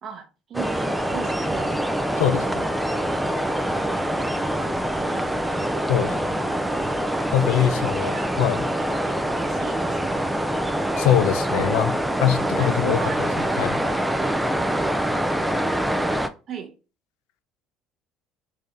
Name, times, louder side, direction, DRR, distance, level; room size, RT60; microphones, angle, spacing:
voice 1, 0.0-1.9 4.6-5.9 6.2-6.9 7.4-8.4 8.7-10.1 11.5-11.7 12.4-13.7 16.5-16.7, right 7 dB, 45° right, 0.7 m, -38 dB
sound 1, 0.5-16.3, right 1 dB, 5° right, 0.4 m, -25 dB
voice 2, 2.2-2.6 5.9-6.2 7.3-8.6 11.0-11.9 12.2-13.3 13.6-13.8, left 10 dB, 85° left, 0.4 m, -22 dB
3.7 x 2.7 x 3.2 m
cardioid pair, 110°, 0 cm